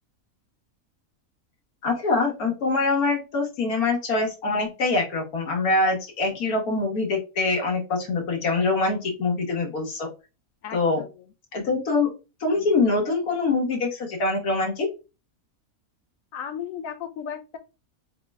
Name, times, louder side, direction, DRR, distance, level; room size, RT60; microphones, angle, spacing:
voice 1, 1.8-10.1 10.7-11.1 11.5-12.1 12.4-14.9, left 3 dB, 90° left, 0 dB, 1.6 m, -24 dB
voice 2, 10.6-11.1 16.3-17.6, left 8 dB, 75° left, 7 dB, 1.1 m, -35 dB
4.2 x 2.1 x 3.4 m, 0.29 s
omnidirectional pair, 1.5 m